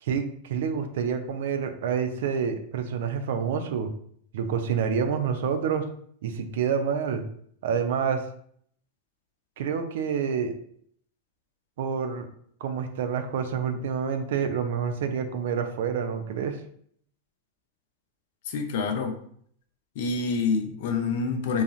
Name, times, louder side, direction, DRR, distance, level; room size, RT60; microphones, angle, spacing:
voice 1, 0.0-3.9 4.3-5.9 6.2-7.2 7.6-8.2 9.6-10.5 11.8-12.3 12.6-16.6, right 6 dB, 55° right, 7 dB, 0.4 m, -28 dB
voice 2, 18.5-19.1 20.0-21.6, left 4 dB, 50° left, 6 dB, 0.5 m, -27 dB
3.8 x 2.4 x 2.4 m, 0.62 s
figure-of-eight pair, 90°, 0 cm